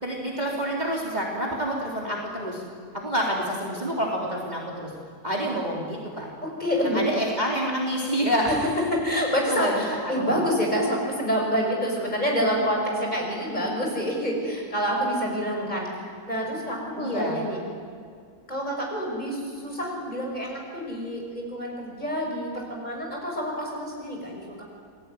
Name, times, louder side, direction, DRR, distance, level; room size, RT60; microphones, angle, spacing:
voice 1, 0.0-2.6 2.9-4.9 5.2-6.3 6.9-8.5 9.5-10.4 17.0-17.4, equal, 25° right, -3 dB, 3.9 m, -28 dB
voice 2, 6.4-7.0 8.5-15.9 16.3-17.6 18.5-24.6, equal, 25° left, 0 dB, 6.4 m, -27 dB
29.0 x 21.0 x 9.6 m, 2.2 s
omnidirectional pair, 1.9 m